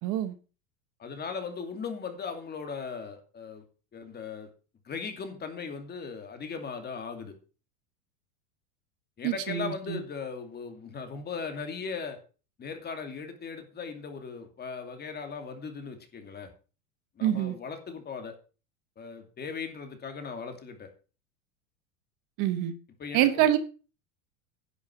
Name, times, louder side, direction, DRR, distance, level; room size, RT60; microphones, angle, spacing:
voice 1, 0.0-0.4 9.2-10.0 17.2-17.5 22.4-22.7 23.1-23.6, right 12 dB, 45° right, 1.2 m, -26 dB
voice 2, 1.0-3.6 3.9-4.5 4.8-7.3 9.2-12.2 12.6-16.5 17.2-18.3 19.0-20.9 23.0-23.4, left 5 dB, 20° left, 2.5 m, -38 dB
11.0 x 7.4 x 6.0 m
supercardioid pair, 135°, 43 cm